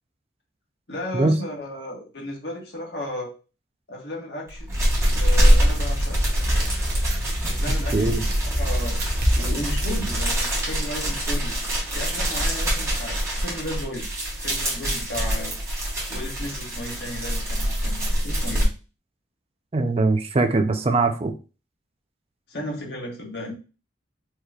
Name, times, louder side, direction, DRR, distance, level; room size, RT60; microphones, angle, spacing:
voice 1, 0.9-3.3 3.9-4.7 5.2-6.2 7.4-8.2 8.6-9.0 9.3-11.5 11.9-14.1 14.4-15.5 16.1-18.7 22.5-23.5, left 1 dB, 60° left, -1 dB, 1.4 m, -34 dB
sound 1, 4.5-18.7, equal, 15° right, 1.4 m, -25 dB
sound 2, 4.7-10.3, equal, 50° right, 1.0 m, -26 dB
voice 2, 7.9-8.2 19.7-21.3, right 3 dB, 30° right, 7 dB, 0.5 m, -21 dB
4.5 x 3.1 x 2.3 m, 0.33 s
head